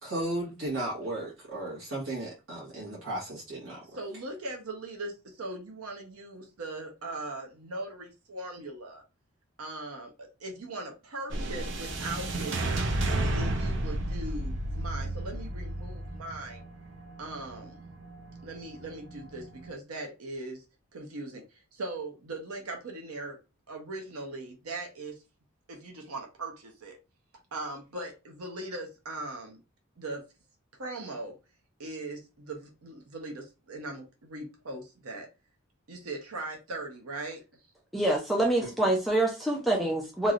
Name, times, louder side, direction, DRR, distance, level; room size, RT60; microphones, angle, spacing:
voice 1, 0.0-3.8, right 1 dB, 70° right, 1.3 m, -35 dB
voice 2, 3.9-9.0 9.6-13.0 13.3-16.6 17.2-17.8 18.4-20.6 20.9-23.4 23.7-25.2 25.7-27.0 27.5-29.6 30.0-30.2 30.7-31.4 31.8-35.3 35.9-37.4, right 2 dB, 90° right, 0.9 m, -40 dB
sound 1, 11.3-19.7, right 1 dB, 55° right, 0.6 m, -33 dB
voice 3, 37.9-40.3, right 1 dB, ahead, 0.5 m, -26 dB
3.1 x 2.7 x 2.5 m
head